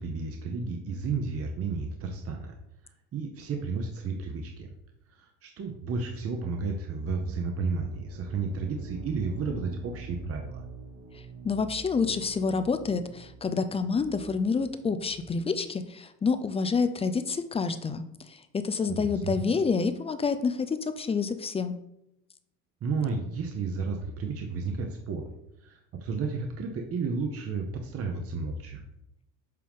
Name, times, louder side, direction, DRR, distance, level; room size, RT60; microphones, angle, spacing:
voice 1, 0.0-2.6 3.1-4.7 5.1-10.6 18.9-19.4 22.8-25.3 25.6-28.8, right 4 dB, 35° right, 3 dB, 1.0 m, -32 dB
sound 1, 7.8-15.4, right 3 dB, 55° right, 1.6 m, -46 dB
voice 2, 11.4-21.8, left 5 dB, 15° left, 10 dB, 0.4 m, -28 dB
7.7 x 3.7 x 3.6 m, 0.81 s
supercardioid pair, 100°, 39 cm